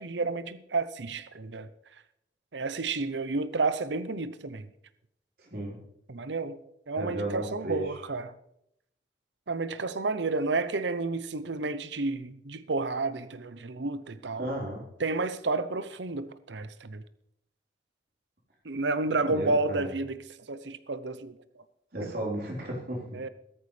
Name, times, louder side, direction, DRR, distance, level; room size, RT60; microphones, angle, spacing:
voice 1, 0.0-1.7 2.5-4.7 6.1-6.6 6.9-8.3 9.5-14.5 15.0-17.0 18.6-20.2 20.5-21.4 22.0-22.1 23.1-23.3, right 3 dB, 80° right, 0.8 m, -31 dB
voice 2, 5.4-5.8 7.0-7.9 14.4-14.8 19.2-19.9 21.9-23.3, right 1 dB, 55° right, 4.2 m, -34 dB
16.0 x 13.5 x 3.4 m
head